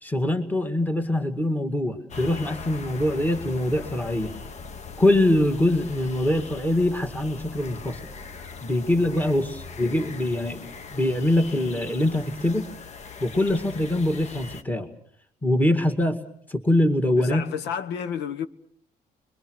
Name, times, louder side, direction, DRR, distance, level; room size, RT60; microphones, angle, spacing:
voice 1, 0.0-4.3 5.0-8.0 8.6-12.7 13.2-14.9 15.4-16.2 16.5-17.5, left 1 dB, 10° left, 2.1 m, -23 dB
sound 1, 2.1-14.6, left 5 dB, 40° left, 1.2 m, -40 dB
voice 2, 17.2-18.5, left 8 dB, 80° left, 1.3 m, -30 dB
30.0 x 23.0 x 6.3 m
cardioid pair, 110°, 17 cm